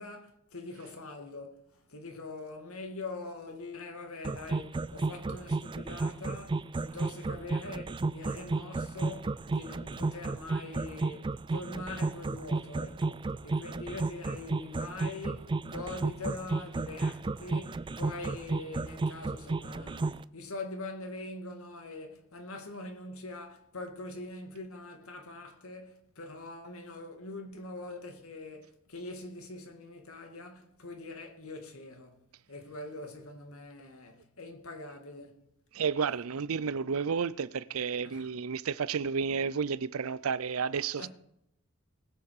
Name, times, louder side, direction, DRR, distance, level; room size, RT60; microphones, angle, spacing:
voice 1, 0.0-35.5 38.0-38.3 41.0-41.1, left 2 dB, 90° left, 2.1 m, -43 dB
sound 1, 4.2-20.2, right 3 dB, 25° right, 0.4 m, -32 dB
voice 2, 35.7-41.1, right 6 dB, 85° right, 0.5 m, -31 dB
20.5 x 7.2 x 4.9 m
head